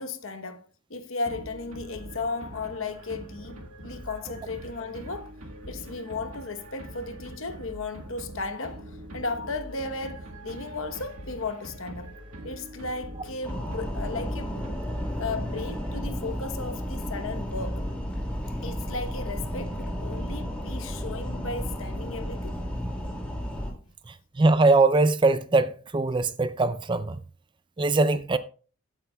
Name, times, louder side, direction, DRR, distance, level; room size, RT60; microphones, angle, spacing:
voice 1, 0.0-5.3 5.7-12.1 12.4-14.7 15.2-17.9 18.6-22.6, left 3 dB, 65° left, 1.0 m, -35 dB
sound 1, 1.2-16.3, right 1 dB, 80° right, 1.7 m, -43 dB
sound 2, 13.4-23.7, equal, 5° left, 2.4 m, -32 dB
voice 2, 24.1-27.2 27.8-28.4, right 3 dB, 20° right, 0.4 m, -22 dB
15.0 x 8.6 x 2.3 m
head